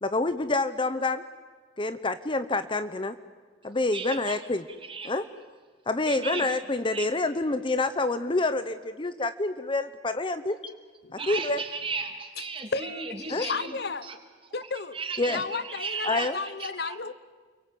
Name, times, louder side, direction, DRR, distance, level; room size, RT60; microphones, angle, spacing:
voice 1, 0.0-1.2 1.8-3.2 3.6-4.7 5.0-5.3 5.9-10.7 11.1-11.6 13.3-13.5 15.2-15.4 16.0-16.4, left 2 dB, 30° left, 11 dB, 0.8 m, -27 dB
voice 2, 3.9-4.4 4.9-5.1 6.1-6.5 6.9-7.1 11.2-13.7 14.1-14.2 14.9-16.3 16.6-16.9, right 4 dB, 30° right, 5 dB, 3.0 m, -35 dB
voice 3, 12.7-14.1 14.5-15.0 15.3-17.1, left 4 dB, 65° left, 13 dB, 1.1 m, -33 dB
29.5 x 23.0 x 8.5 m, 1.5 s
head